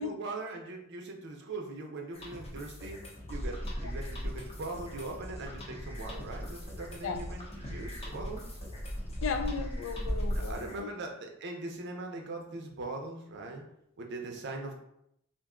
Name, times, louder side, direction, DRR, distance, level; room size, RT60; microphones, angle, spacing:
voice 1, 0.0-3.0 3.3-8.4 10.3-13.6 14.0-14.7, right 2 dB, 55° right, 2 dB, 0.6 m, -41 dB
sound 1, 2.1-10.8, left 1 dB, 30° left, 0.7 m, -45 dB
Bird vocalization bird call bird song, 3.3-10.6, equal, 10° right, 0.3 m, -38 dB
voice 2, 9.2-10.9, left 5 dB, 70° left, 8 dB, 0.3 m, -35 dB
2.5 x 2.2 x 3.6 m, 0.75 s
head